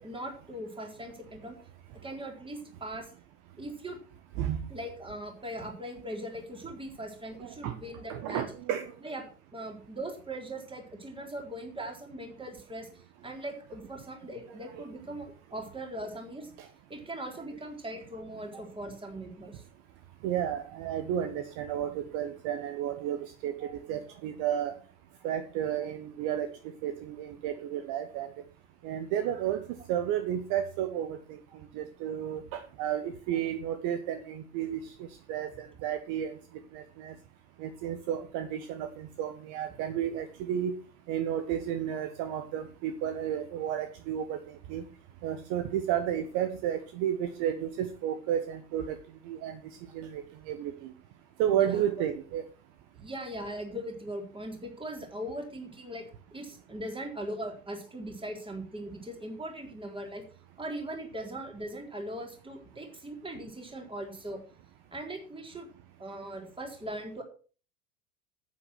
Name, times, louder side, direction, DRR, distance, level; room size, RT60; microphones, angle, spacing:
voice 1, 0.0-1.6 2.0-3.1 3.6-4.0 4.7-8.4 9.0-16.5 16.9-19.6 23.6-23.7 51.5-51.8 52.9-56.0 56.3-60.2 60.6-64.4 64.9-65.7 66.0-67.2, right 1 dB, 10° right, 2 dB, 3.9 m, -40 dB
voice 2, 7.4-7.7 8.1-8.9 14.7-14.8 16.6-16.7 20.2-24.7 25.2-26.5 26.8-28.3 28.8-29.6 29.9-31.4 31.7-36.3 36.7-37.1 37.6-40.7 41.1-44.4 44.7-44.8 45.2-49.0 49.2-49.6 49.9-50.9 51.4-52.5, right 10 dB, 45° right, 10 dB, 1.4 m, -32 dB
10.0 x 8.7 x 6.2 m, 0.38 s
figure-of-eight pair, 80°, 41 cm